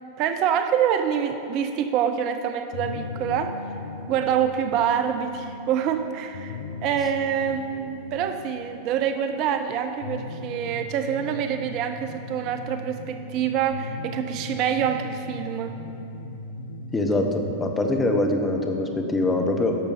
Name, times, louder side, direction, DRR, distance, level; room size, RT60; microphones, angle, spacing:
voice 1, 0.2-3.5 4.1-15.7, right 8 dB, 40° right, 8 dB, 0.5 m, -26 dB
sound 1, 2.7-17.5, left 3 dB, 60° left, 0.5 m, -38 dB
voice 2, 16.9-19.8, left 2 dB, 15° left, 3 dB, 1.0 m, -23 dB
11.5 x 6.7 x 5.2 m, 2.8 s
figure-of-eight pair, 90°, 0 cm